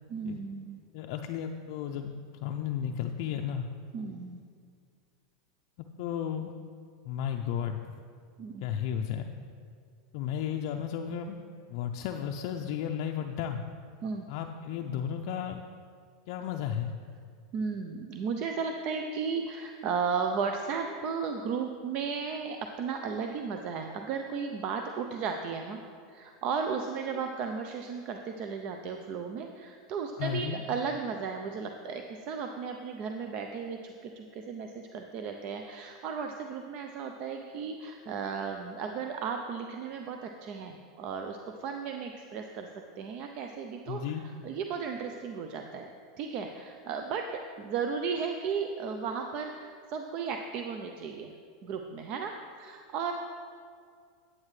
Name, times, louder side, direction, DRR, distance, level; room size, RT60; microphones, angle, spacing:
voice 1, 0.1-0.8 3.9-4.4 8.4-8.7 14.0-14.2 17.5-25.8 26.1-42.7 43.0-45.9 46.2-51.3 51.6-53.1, right 5 dB, 45° right, 4 dB, 0.5 m, -35 dB
voice 2, 0.9-3.7 6.0-6.5 7.0-8.0 8.6-9.2 10.1-11.4 11.7-13.6 14.3-15.6 16.3-16.9 30.2-30.6 43.9-44.2, left 9 dB, 55° left, 3 dB, 0.4 m, -33 dB
9.3 x 8.6 x 3.2 m, 2.2 s
supercardioid pair, 135°, 3 cm